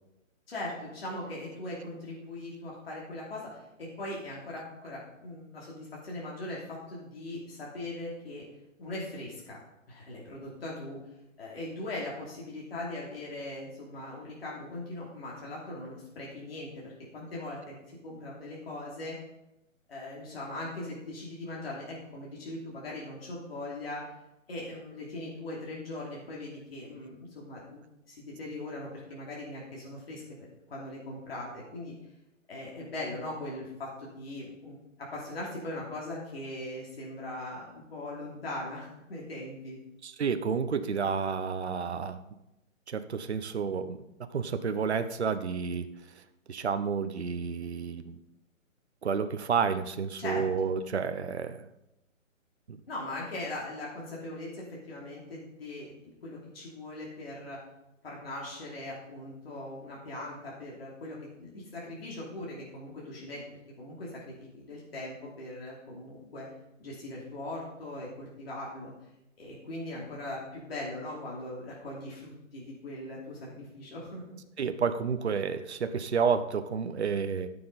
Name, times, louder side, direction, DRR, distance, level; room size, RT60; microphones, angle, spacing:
voice 1, 0.5-8.5 8.8-9.6 9.9-11.0 11.4-19.2 19.9-24.1 24.5-27.8 28.1-30.2 30.7-31.9 32.5-39.8 50.2-50.4 52.9-57.6 58.0-63.4 63.8-66.5 66.8-68.9 69.4-74.4, left 1 dB, 45° left, -4 dB, 2.9 m, -40 dB
voice 2, 40.0-42.2 42.9-44.0 44.3-45.9 46.5-48.2 49.0-51.7 52.7-52.8 74.6-77.5, right 6 dB, 55° right, 10 dB, 0.8 m, -30 dB
13.5 x 6.9 x 4.1 m, 0.90 s
hypercardioid pair, 180°, 40 cm